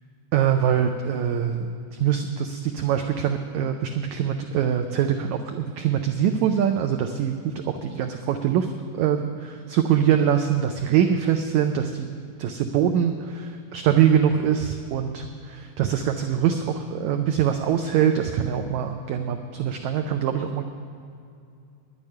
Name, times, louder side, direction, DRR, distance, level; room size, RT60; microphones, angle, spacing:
voice 1, 0.3-1.7 1.9-8.7 9.0-12.1 12.4-20.6, right 9 dB, 80° right, 6 dB, 1.7 m, -23 dB
10.5 x 8.5 x 9.7 m, 2.4 s
omnidirectional pair, 4.0 m